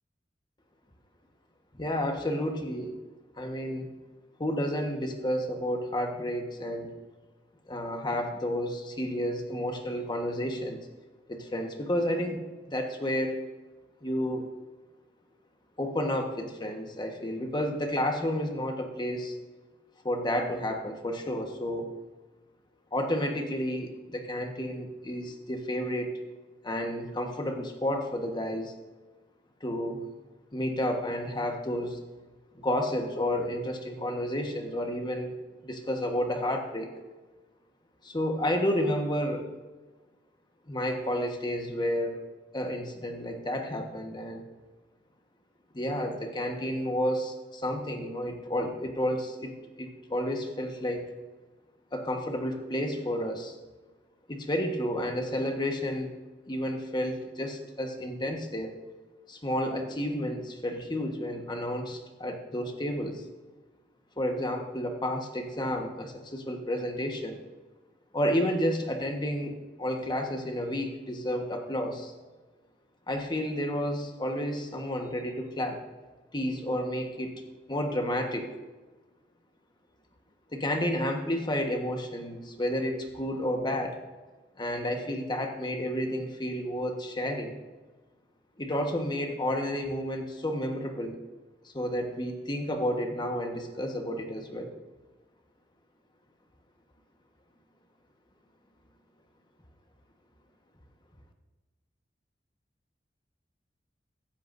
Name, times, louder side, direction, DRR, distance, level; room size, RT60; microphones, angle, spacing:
voice 1, 1.8-3.0 3.4-3.9 4.4-6.9 7.7-10.8 11.3-13.4 14.0-14.5 15.8-19.4 20.0-21.9 22.9-26.1 26.6-28.7 29.6-30.0 30.5-32.0 32.5-35.3 35.6-36.9 38.0-39.5 40.7-42.2 42.5-44.4 45.7-49.5 49.8-51.1 51.9-53.6 54.3-56.1 56.5-58.8 59.3-63.2 64.2-67.4 68.1-72.1 73.1-75.8 76.3-77.3 77.7-78.5 80.5-84.0 84.6-87.6 88.6-91.2 91.7-94.7, equal, 25° left, 4 dB, 1.4 m, -31 dB
15.0 x 13.0 x 2.7 m, 1.3 s
head